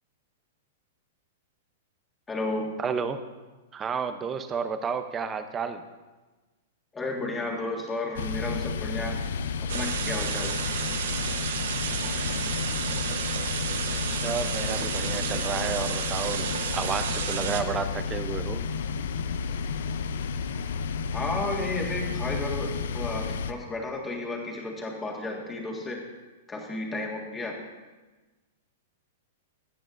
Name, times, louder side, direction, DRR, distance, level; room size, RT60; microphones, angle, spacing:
voice 1, 2.3-2.8 6.9-9.2 9.7-10.5 21.1-26.0 26.5-27.6, left 2 dB, 15° left, -1 dB, 1.7 m, -32 dB
voice 2, 2.8-3.2 3.7-5.8 14.2-18.6, right 6 dB, 20° right, 9 dB, 0.6 m, -31 dB
sound 1, 8.2-23.5, left 5 dB, 75° left, 0.5 m, -31 dB
sound 2, 9.7-17.6, right 7 dB, 75° right, 1.0 m, -32 dB
16.0 x 10.0 x 2.6 m, 1.2 s
hypercardioid pair, 145°, 0 cm